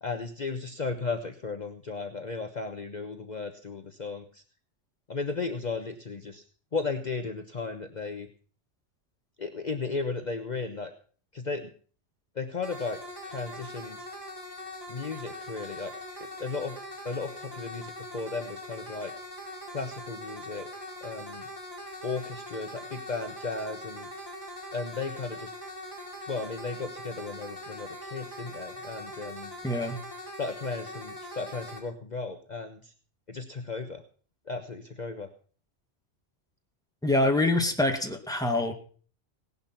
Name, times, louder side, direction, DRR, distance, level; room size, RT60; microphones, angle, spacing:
voice 1, 0.0-4.4 5.1-6.4 6.7-8.3 9.4-10.9 11.3-11.7 12.3-13.0 13.2-14.1 14.9-15.9 16.4-16.7 17.0-19.1 19.7-20.7 21.0-21.5 22.0-24.1 24.7-25.5 26.3-29.5 30.4-32.9 33.3-34.0 34.5-35.3, left 4 dB, 40° left, 6 dB, 1.2 m, -35 dB
sound 1, 12.6-31.8, left 1 dB, 20° left, 4.9 m, -42 dB
voice 2, 29.6-30.0 37.0-38.7, left 2 dB, 5° left, 3 dB, 2.0 m, -25 dB
18.0 x 11.0 x 5.9 m, 0.42 s
omnidirectional pair, 1.2 m